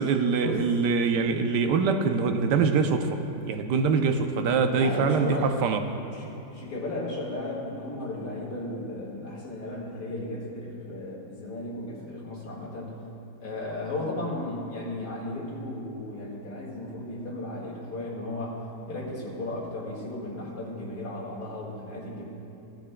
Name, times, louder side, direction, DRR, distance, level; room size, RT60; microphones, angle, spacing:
voice 1, 0.0-5.8, right 5 dB, 80° right, 7 dB, 1.3 m, -24 dB
voice 2, 4.7-5.6 6.1-13.0 13.4-22.3, left 1 dB, 70° left, -4 dB, 2.4 m, -35 dB
15.5 x 10.5 x 2.2 m, 2.9 s
omnidirectional pair, 1.8 m